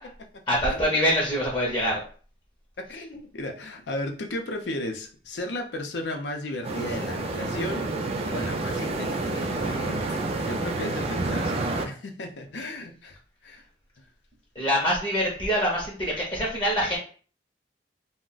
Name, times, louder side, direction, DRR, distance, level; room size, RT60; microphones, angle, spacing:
voice 1, 0.5-2.0 14.6-17.0, equal, 25° left, -3 dB, 0.6 m, -24 dB
voice 2, 2.9-7.8 8.3-13.6, left 1 dB, 90° left, 4 dB, 0.6 m, -35 dB
sound 1, 6.6-11.9, right 2 dB, 35° right, 0.3 m, -29 dB
2.4 x 2.1 x 3.8 m, 0.41 s
head